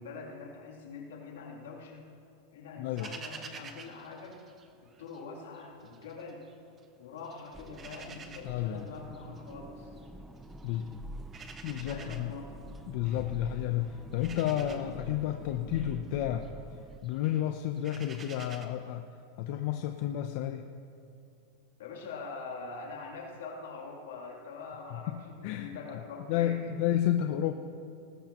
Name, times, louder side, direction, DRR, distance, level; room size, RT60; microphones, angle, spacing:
voice 1, 0.0-2.0 2.5-4.4 5.0-6.5 7.0-9.9 11.8-12.5 21.8-26.7, left 4 dB, 85° left, -2 dB, 3.1 m, -44 dB
voice 2, 2.8-3.1 8.4-8.9 10.6-10.9 11.6-12.3 12.9-16.5 17.0-19.1 19.4-20.6 24.9-25.0 25.4-26.0 26.3-27.5, left 11 dB, 55° left, 6 dB, 0.6 m, -31 dB
sound 1, 3.0-5.2 5.5-6.8 7.2-18.7, right 5 dB, 25° right, 1.0 m, -50 dB
sound 2, 7.5-17.0, right 1 dB, 5° right, 0.5 m, -47 dB
19.5 x 14.0 x 3.0 m, 2.5 s
supercardioid pair, 135°, 0 cm